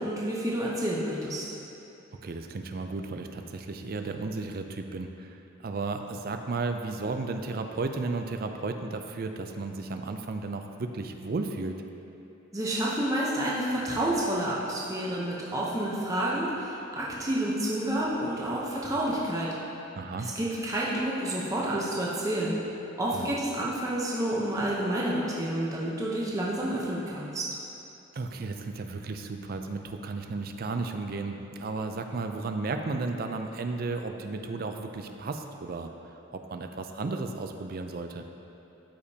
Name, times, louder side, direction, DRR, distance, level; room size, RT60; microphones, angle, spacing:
voice 1, 0.0-1.4 12.5-19.5 20.2-22.6 23.0-27.5, right 1 dB, 15° right, -6 dB, 0.8 m, -29 dB
voice 2, 2.2-11.7 20.0-20.3 23.1-23.3 28.1-35.9 36.3-38.2, right 3 dB, 45° right, 6 dB, 0.4 m, -34 dB
13.0 x 5.0 x 2.8 m, 2.9 s
head